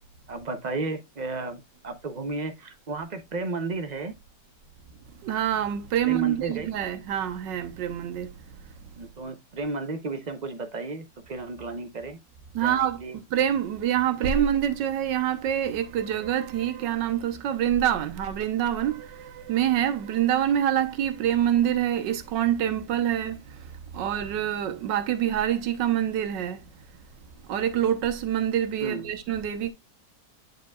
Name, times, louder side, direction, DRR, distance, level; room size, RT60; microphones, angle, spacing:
voice 1, 0.3-4.1 6.0-6.7 9.0-12.2 12.6-13.2 28.8-29.1, right 3 dB, 55° right, 0.4 m, -33 dB
voice 2, 5.2-8.3 12.5-13.0 13.3-23.4 23.9-26.6 27.5-29.7, right 10 dB, 85° right, 1.5 m, -26 dB
9.1 x 5.0 x 2.3 m
omnidirectional pair, 1.9 m